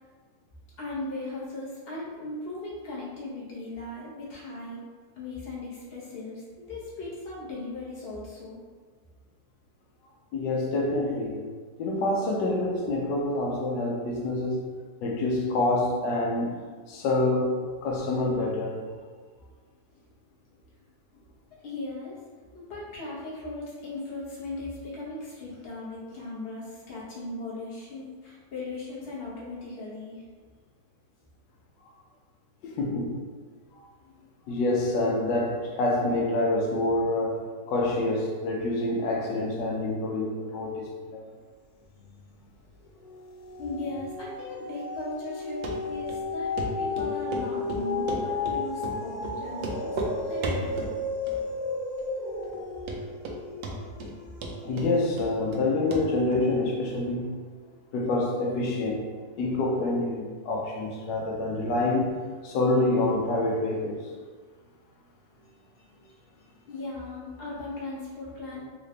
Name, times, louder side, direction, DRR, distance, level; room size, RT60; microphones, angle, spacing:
voice 1, 0.8-4.8 5.2-8.6 21.6-22.2 22.5-30.2 43.6-50.0 50.2-51.0 66.0-68.6, left 2 dB, 40° left, -7 dB, 1.1 m, -38 dB
voice 2, 10.3-11.4 11.8-14.7 15.0-16.6 16.9-18.8 32.7-33.2 33.8-33.9 34.5-41.2 54.6-57.4 57.9-59.0 59.4-64.1, left 2 dB, 90° left, -1 dB, 1.3 m, -27 dB
sound 1, 42.0-42.5 42.9-55.3 55.9-56.0, left 3 dB, 70° left, 1.0 m, -34 dB
Run, 45.6-45.7 46.1-46.2 46.6-46.7 47.0-47.4 47.7-48.6 48.8-49.0 49.2-49.3 49.6-50.1 50.4-50.9 51.3-51.7 52.0-52.1 52.5-52.6 52.9-53.4 53.6-54.1 54.4-55.6 55.9-56.0 56.3-56.4, right 2 dB, 85° right, 1.2 m, -33 dB
3.8 x 2.5 x 3.2 m, 1.5 s
omnidirectional pair, 1.9 m